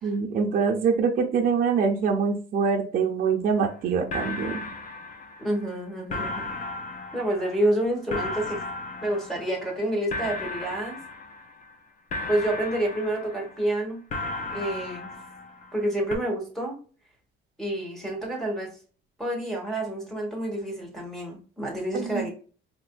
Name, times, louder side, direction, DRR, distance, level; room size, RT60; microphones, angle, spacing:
voice 1, 0.0-4.6 21.9-22.3, right 5 dB, 45° right, 0 dB, 0.7 m, -24 dB
sound 1, 3.7-3.8 4.1-5.7 6.1-9.8 10.1-11.7 12.1-13.7 14.1-15.8 16.1-16.2, left 2 dB, 35° left, 0.7 m, -35 dB
voice 2, 5.4-6.5 7.1-8.6 9.0-11.0 12.3-14.0 14.5-15.1 15.7-16.7 17.6-18.7 19.2-22.3, right 1 dB, ahead, 0 dB, 1.2 m, -28 dB
4.5 x 2.6 x 2.2 m, 0.39 s
cardioid pair, 155°, 20 cm